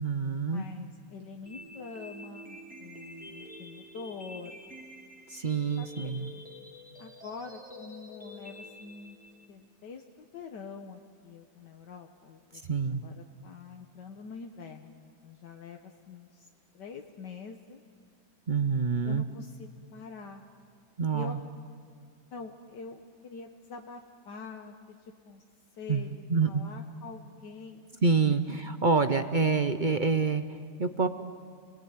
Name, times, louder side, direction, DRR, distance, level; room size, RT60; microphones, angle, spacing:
voice 1, 0.0-0.6 5.3-6.3 12.7-13.0 18.5-19.2 21.0-21.4 25.9-26.0 26.3-26.6 28.0-30.5 30.8-31.1, right 4 dB, 45° right, 9 dB, 0.6 m, -27 dB
voice 2, 0.5-4.6 5.8-6.1 7.0-9.2 9.5-12.8 13.0-16.5 16.7-17.8 19.0-20.4 21.1-21.4 22.3-25.4 25.8-27.9 28.3-28.4, left 5 dB, 75° left, 3 dB, 1.8 m, -45 dB
sound 1, 1.5-9.5, left 1 dB, 5° right, 2.1 m, -48 dB
29.0 x 20.0 x 9.6 m, 2.1 s
omnidirectional pair, 1.8 m